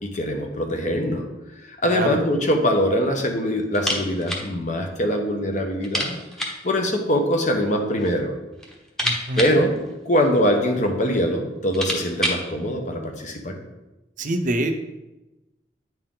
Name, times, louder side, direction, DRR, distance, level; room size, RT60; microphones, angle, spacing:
voice 1, 0.0-1.3 1.8-6.2 6.4-8.3 9.4-9.8 10.0-13.6, equal, 45° left, 3 dB, 1.0 m, -23 dB
sound 1, 3.7-4.5 4.8-4.9 5.2-5.3 5.8-6.7 7.6-8.2 8.5-10.5 11.2-11.3 11.6-12.5, equal, 5° left, 1.0 m, -29 dB
voice 2, 9.0-9.6 14.2-14.8, right 1 dB, 45° right, 7 dB, 0.6 m, -25 dB
9.1 x 4.5 x 3.8 m, 1.0 s
head